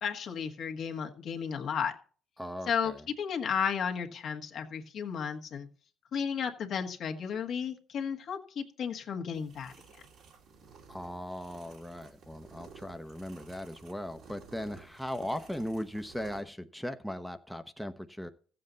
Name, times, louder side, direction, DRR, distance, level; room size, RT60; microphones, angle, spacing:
voice 1, 0.0-1.9 2.7-2.9 3.2-5.7 6.1-9.7, left 7 dB, 65° left, 4 dB, 1.5 m, -33 dB
voice 2, 2.4-3.0 10.9-18.3, equal, ahead, 7 dB, 0.8 m, -38 dB
sound 1, 9.3-16.4, right 5 dB, 70° right, 2.5 m, -54 dB
14.5 x 7.7 x 4.0 m, 0.42 s
supercardioid pair, 70°, 0 cm